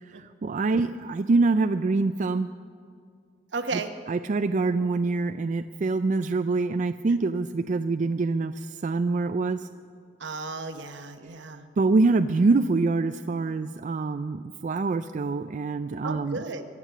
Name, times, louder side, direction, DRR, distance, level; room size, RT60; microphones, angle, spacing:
voice 1, 0.0-2.5 3.7-3.8 4.1-9.7 11.8-16.4, right 3 dB, 45° right, 9 dB, 0.4 m, -25 dB
voice 2, 3.5-3.9 10.2-11.7 16.0-16.7, right 3 dB, 70° right, 8 dB, 1.0 m, -34 dB
22.5 x 8.4 x 7.3 m, 2.3 s
head